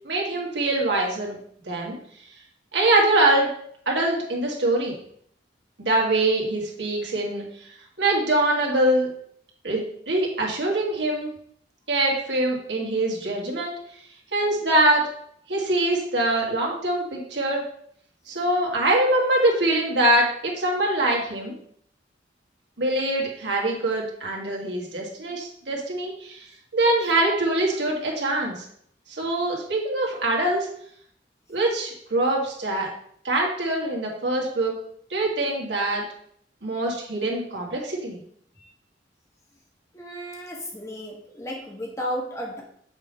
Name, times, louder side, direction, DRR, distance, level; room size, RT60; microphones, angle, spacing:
voice 1, 0.0-1.4 1.7-2.0 2.7-3.5 3.9-4.9 5.8-7.4 8.0-9.1 9.6-11.3 11.9-13.8 14.3-15.1 15.5-17.6 18.3-21.5 22.8-26.5 26.7-28.6 29.1-30.7 31.5-32.9 33.2-34.7 35.1-36.0 36.6-38.2, right 1 dB, 75° right, -2 dB, 2.0 m, -23 dB
voice 2, 39.9-42.6, equal, 15° left, -1 dB, 1.4 m, -33 dB
7.1 x 3.6 x 5.4 m, 0.65 s
head